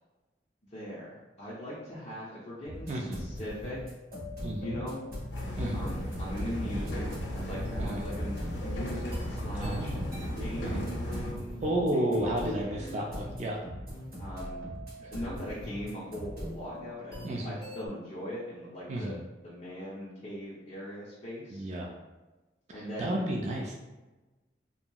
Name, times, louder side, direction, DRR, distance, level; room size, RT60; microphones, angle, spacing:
voice 1, 0.7-3.8 4.6-5.0 5.7-10.0 10.4-13.0 14.2-14.7 15.1-21.7 22.7-23.2, equal, 35° left, -8 dB, 0.6 m, -40 dB
sound 1, 2.6-17.9, left 1 dB, 55° right, 1.3 m, -41 dB
voice 2, 2.9-3.3 4.4-4.8 5.6-5.9 7.8-8.0 9.6-10.2 10.6-10.9 11.6-13.6 15.0-15.1 17.2-17.6 18.9-19.2 21.5-21.9 22.7-23.7, right 1 dB, 40° right, 0 dB, 0.3 m, -32 dB
sound 2, 5.3-11.3, equal, 85° left, 0.6 m, -35 dB
2.8 x 2.6 x 2.2 m, 1.1 s
head